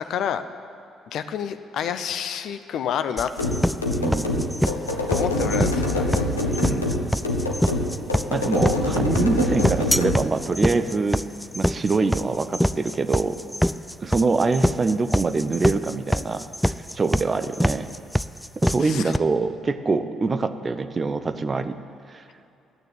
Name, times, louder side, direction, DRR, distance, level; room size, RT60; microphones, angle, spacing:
voice 1, 0.1-0.4 1.1-3.3 5.1-6.2 6.6-6.8 18.8-19.2, left 9 dB, 55° left, 10 dB, 0.7 m, -29 dB
sound 1, 3.2-19.2, equal, 5° left, 0.4 m, -24 dB
sound 2, 3.4-10.2, left 1 dB, 85° left, 1.0 m, -25 dB
voice 2, 4.0-4.5 6.6-7.0 8.3-11.2 11.5-13.4 14.0-17.9 18.6-21.8 22.1-22.2, right 4 dB, 30° right, 10 dB, 0.8 m, -24 dB
12.0 x 9.1 x 9.2 m, 2.7 s
figure-of-eight pair, 45°, 0 cm